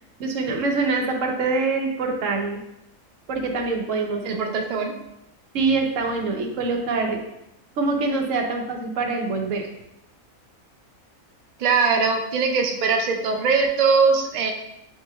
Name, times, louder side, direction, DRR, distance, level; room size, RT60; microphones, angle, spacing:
voice 1, 0.2-2.6 3.3-4.4 5.5-7.2 7.8-9.7, right 3 dB, 65° right, 2 dB, 1.0 m, -24 dB
voice 2, 4.2-4.9 11.6-14.5, right 5 dB, 85° right, 2 dB, 0.3 m, -21 dB
7.3 x 3.0 x 2.3 m, 0.85 s
omnidirectional pair, 1.5 m